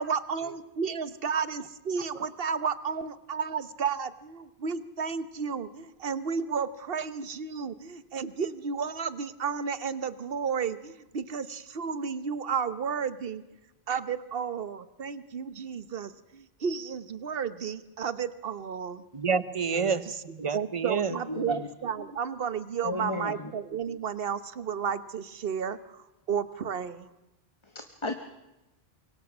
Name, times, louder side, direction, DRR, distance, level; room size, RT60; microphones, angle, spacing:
voice 1, 0.0-13.4 13.9-19.0 20.5-27.1, right 6 dB, 65° right, 14 dB, 1.2 m, -32 dB
voice 2, 19.1-21.2, right 6 dB, 35° right, 15 dB, 0.8 m, -28 dB
voice 3, 21.3-21.7 22.8-23.5 27.6-28.1, left 2 dB, 30° left, 6 dB, 1.2 m, -34 dB
25.0 x 23.0 x 6.1 m, 0.99 s
omnidirectional pair, 1.1 m